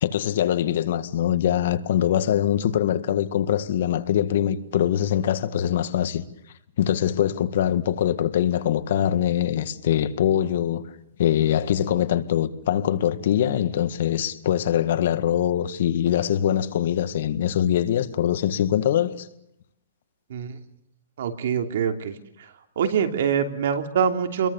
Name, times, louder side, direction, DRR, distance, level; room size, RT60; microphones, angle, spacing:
voice 1, 0.0-6.2 6.8-10.9 11.2-19.3, left 10 dB, 60° left, 1.7 m, -23 dB
voice 2, 21.2-22.1 22.8-24.5, right 7 dB, 65° right, 3.0 m, -24 dB
29.0 x 22.5 x 7.1 m
hypercardioid pair, 160°, 0 cm